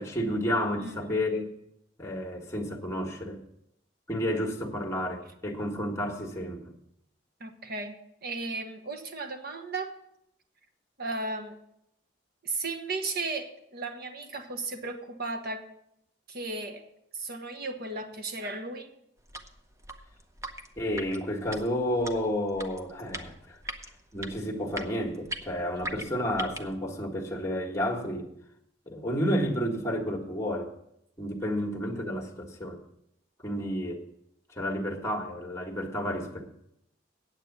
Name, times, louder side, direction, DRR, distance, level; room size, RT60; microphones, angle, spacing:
voice 1, 0.0-1.4 2.0-3.4 4.1-6.7 20.8-23.6 24.1-28.3 28.9-30.7 31.2-32.8 33.4-34.1 34.5-36.5, equal, 15° left, 3 dB, 1.6 m, -31 dB
voice 2, 0.8-1.2 7.4-9.9 11.0-11.5 12.4-15.6 16.3-16.8 17.1-18.9 25.8-25.9, right 3 dB, 55° right, 7 dB, 1.3 m, -35 dB
sound 1, 19.2-26.8, right 1 dB, 15° right, 0.8 m, -41 dB
9.1 x 8.1 x 7.2 m, 0.78 s
head